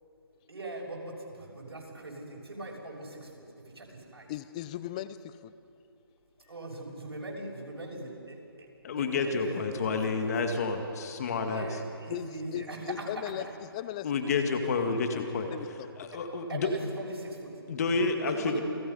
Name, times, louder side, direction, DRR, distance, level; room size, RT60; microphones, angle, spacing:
voice 1, 0.5-3.4 3.7-4.3 6.5-10.5 11.3-13.1 16.5-17.5 18.2-18.6, right 2 dB, 85° right, -2 dB, 6.8 m, -40 dB
voice 2, 4.3-5.5 12.1-12.3 12.5-13.5 13.7-14.1 15.1-15.7 16.0-16.2, left 13 dB, 15° left, 15 dB, 0.4 m, -37 dB
voice 3, 8.8-11.7 14.0-15.5 16.0-16.7 17.7-18.6, left 4 dB, 40° left, 5 dB, 2.0 m, -29 dB
29.0 x 17.5 x 5.6 m, 2.7 s
hypercardioid pair, 160°, 13 cm